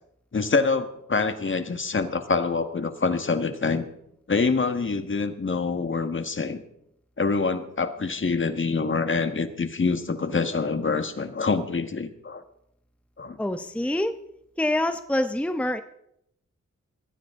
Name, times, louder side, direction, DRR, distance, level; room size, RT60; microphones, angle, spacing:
voice 1, 0.3-3.9 4.3-6.6 7.2-12.4 13.2-13.4, left 4 dB, 40° left, 8 dB, 1.6 m, -26 dB
voice 2, 13.4-14.2 14.6-15.8, left 1 dB, 5° left, 9 dB, 0.9 m, -26 dB
20.5 x 15.0 x 3.8 m, 0.77 s
cardioid pair, 70°, 30 cm